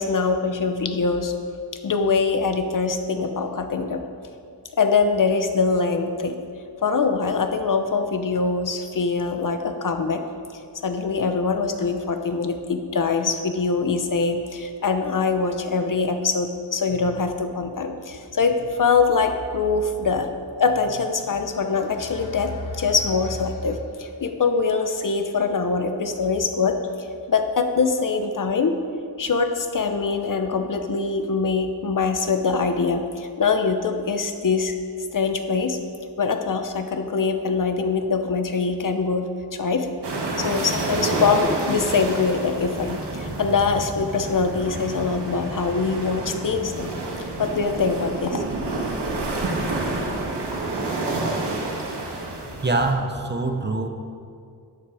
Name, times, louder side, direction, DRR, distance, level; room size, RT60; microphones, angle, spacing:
voice 1, 0.0-1.3 1.8-4.0 4.8-6.4 6.8-10.2 10.8-20.3 20.6-28.8 29.2-34.7 35.1-35.8 36.2-39.9 40.4-46.9 47.2-48.4, left 4 dB, 50° left, 6 dB, 0.9 m, -23 dB
sound 1, 40.0-52.9, right 2 dB, 75° right, 1.8 m, -29 dB
voice 2, 52.6-53.9, right 2 dB, 25° right, 5 dB, 0.9 m, -24 dB
13.0 x 8.7 x 4.9 m, 2.3 s
wide cardioid pair, 150°, 41 cm